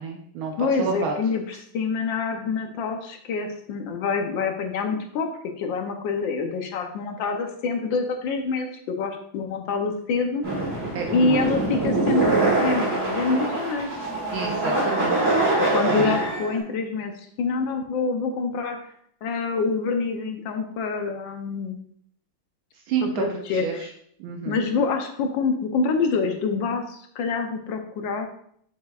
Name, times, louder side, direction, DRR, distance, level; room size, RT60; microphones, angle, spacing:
voice 1, 0.0-1.1 10.9-11.5 14.3-15.4 16.0-16.2 22.9-23.2 23.6-23.7 24.2-24.6, right 6 dB, 80° right, 1 dB, 1.5 m, -29 dB
voice 2, 0.6-5.3 5.6-10.5 11.1-13.9 14.7-15.3 15.6-18.8 19.2-21.8 23.0-23.9 24.4-28.3, left 4 dB, 70° left, 5 dB, 1.4 m, -26 dB
sound 1, 10.4-16.6, right 2 dB, 30° right, 2.5 m, -24 dB
7.2 x 6.1 x 2.4 m, 0.66 s
omnidirectional pair, 2.2 m